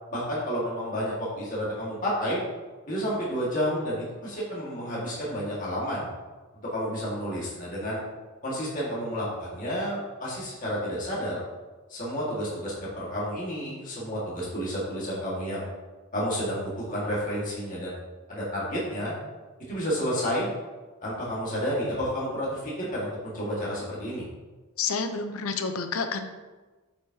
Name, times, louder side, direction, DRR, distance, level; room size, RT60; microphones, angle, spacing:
voice 1, 0.1-2.4 2.9-6.1 6.7-8.0 8.4-11.4 11.9-15.6 16.1-17.9 18.3-19.1 19.7-20.5 21.0-24.2, equal, 35° left, -7 dB, 1.7 m, -30 dB
voice 2, 24.8-26.3, left 5 dB, 75° left, 8 dB, 0.6 m, -29 dB
8.0 x 5.2 x 2.8 m, 1.3 s
head